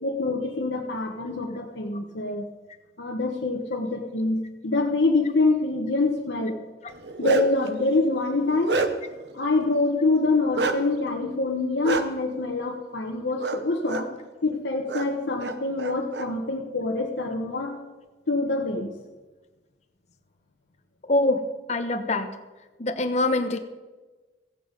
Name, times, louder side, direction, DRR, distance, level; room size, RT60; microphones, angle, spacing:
voice 1, 0.0-2.5 3.0-6.6 7.2-8.8 9.3-14.1 14.4-17.7 18.3-18.9, left 2 dB, 75° left, -1 dB, 1.1 m, -25 dB
Bark, 6.9-7.7 8.2-9.2 10.5-10.8 11.8-12.0 13.4-13.6 13.8-14.0 14.9-15.0 15.4-16.3, right 2 dB, 65° right, 0.9 m, -27 dB
voice 2, 21.1-21.4 21.7-22.3 22.8-23.6, left 2 dB, 40° left, 7 dB, 1.0 m, -23 dB
15.0 x 8.5 x 5.3 m, 1.2 s
head